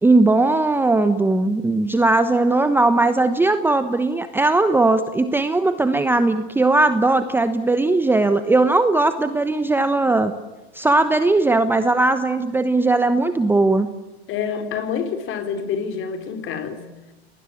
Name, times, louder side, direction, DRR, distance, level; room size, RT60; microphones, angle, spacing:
voice 1, 0.0-10.3 10.7-13.9, right 2 dB, 5° right, 9 dB, 1.1 m, -18 dB
voice 2, 14.3-16.9, left 7 dB, 35° left, 8 dB, 3.8 m, -27 dB
30.0 x 19.5 x 8.7 m, 1.1 s
supercardioid pair, 130°, 33 cm